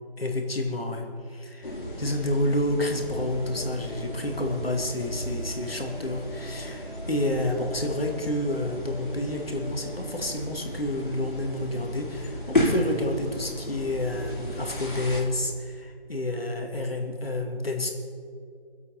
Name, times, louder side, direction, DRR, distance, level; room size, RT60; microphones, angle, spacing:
voice 1, 0.2-1.7 2.0-17.9, left 1 dB, 70° left, 2 dB, 2.4 m, -29 dB
sound 1, 1.6-15.2, left 1 dB, 50° left, 3.4 m, -33 dB
sound 2, 3.1-10.5, right 1 dB, 50° right, 1.2 m, -46 dB
22.5 x 8.1 x 5.7 m, 2.4 s
figure-of-eight pair, 175°, 31 cm